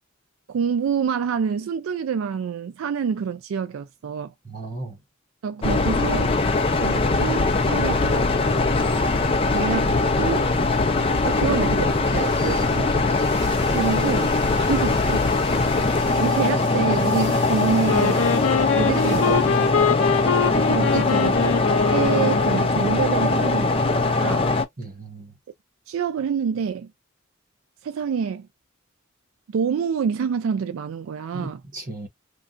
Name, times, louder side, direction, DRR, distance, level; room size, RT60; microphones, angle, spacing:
voice 1, 0.5-4.3 5.4-6.3 6.8-8.3 9.5-10.5 11.2-12.9 13.7-15.3 16.2-18.3 18.7-19.9 20.6-21.5 21.9-24.5 25.9-26.9 27.8-28.5 29.5-31.6, right 6 dB, 85° right, 0.3 m, -27 dB
voice 2, 4.4-5.0 15.6-15.7 20.8-21.5 24.8-25.3 31.3-32.1, right 2 dB, 45° right, 1.1 m, -36 dB
sound 1, 5.6-24.6, left 3 dB, 30° left, 0.5 m, -21 dB
sound 2, 8.7-24.5 24.8-24.9, right 2 dB, 60° right, 1.6 m, -43 dB
Wind instrument woodwind instrument, 17.9-22.9, left 6 dB, 80° left, 0.5 m, -24 dB
3.2 x 2.6 x 2.4 m
head